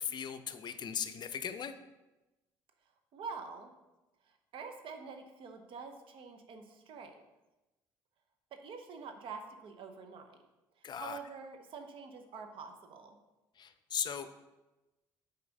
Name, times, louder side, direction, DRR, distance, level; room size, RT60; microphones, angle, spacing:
voice 1, 0.0-1.8 10.8-11.2 13.6-14.3, left 8 dB, 45° left, 10 dB, 0.6 m, -38 dB
voice 2, 3.1-3.7 4.5-7.2 8.6-10.4 11.0-13.2, right 5 dB, 60° right, 6 dB, 1.0 m, -46 dB
6.8 x 4.2 x 5.4 m, 1.1 s
hypercardioid pair, 65°, 10 cm